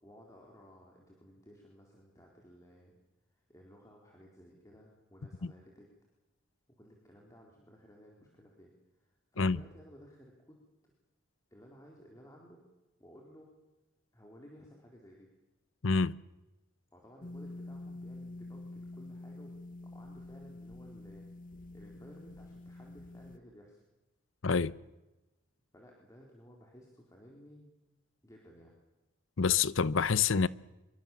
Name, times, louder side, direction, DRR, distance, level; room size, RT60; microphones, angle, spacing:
voice 1, 0.0-3.0 3.3-5.9 6.7-10.6 11.5-12.6 13.0-13.5 14.1-15.3 16.9-19.6 19.8-21.3 21.7-23.8 25.7-27.7 28.2-28.8, equal, 15° left, 4.1 m, -56 dB
voice 2, 15.8-16.2 24.4-24.7 29.4-30.5, left 5 dB, 65° left, 0.8 m, -27 dB
sound 1, 17.2-23.4, left 2 dB, 40° left, 1.4 m, -47 dB
25.5 x 23.5 x 7.3 m
head